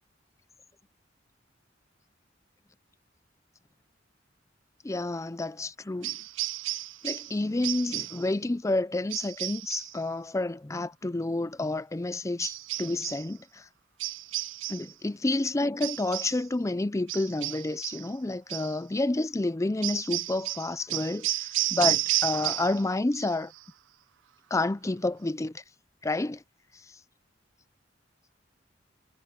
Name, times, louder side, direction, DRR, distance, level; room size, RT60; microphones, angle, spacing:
voice 1, 4.8-6.1 7.0-13.4 14.7-23.5 24.5-25.5 26.0-26.4, left 2 dB, 15° left, 0.5 m, -29 dB
sound 1, 6.0-7.4 7.6-8.3 9.1-10.0 12.4-13.3 14.0-14.9 15.8-16.4 17.1-18.1 18.5-18.8 19.8-22.9 23.1-23.6, right 17 dB, 75° right, 0.4 m, -32 dB
head